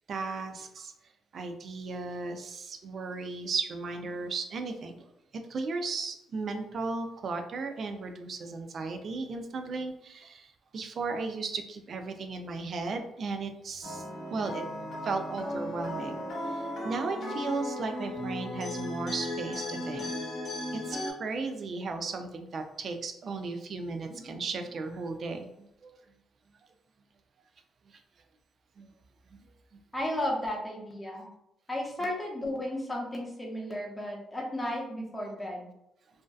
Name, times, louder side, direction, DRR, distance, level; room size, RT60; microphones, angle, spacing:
voice 1, 0.1-0.9 1.3-5.0 5.5-10.5 10.7-14.6 15.0-16.2 16.5-20.1 20.7-25.5 25.8-25.9 28.8-28.9, right 4 dB, 55° right, 6 dB, 0.3 m, -35 dB
sound 1, 13.8-21.1, left 1 dB, 70° left, 0.8 m, -36 dB
voice 2, 29.9-31.3 31.7-35.7, left 1 dB, 15° left, -1 dB, 0.7 m, -34 dB
2.6 x 2.2 x 2.3 m, 0.80 s
cardioid pair, 90°, 0 cm